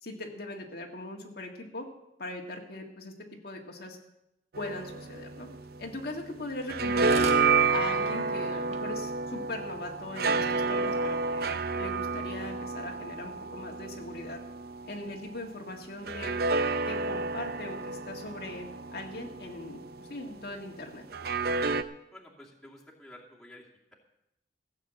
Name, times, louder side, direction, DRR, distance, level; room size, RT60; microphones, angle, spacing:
voice 1, 0.0-1.9 2.2-3.1 3.4-4.0 4.6-5.5 5.8-7.3 7.7-11.4 11.8-14.4 14.9-16.3 16.9-21.0, left 2 dB, 60° left, 1 dB, 1.9 m, -40 dB
sound 1, 4.5-6.2 6.5-15.2 16.0-20.1 21.1-21.8, right 4 dB, 60° right, 0.6 m, -30 dB
sound 2, 6.6-6.7 7.0-7.5 8.0-8.1 8.4-8.5 8.7-8.8 9.4-9.5, right 4 dB, 40° right, 1.3 m, -39 dB
voice 2, 22.1-23.6, left 1 dB, 5° left, -4 dB, 2.5 m, -51 dB
15.5 x 7.4 x 8.0 m, 0.84 s
head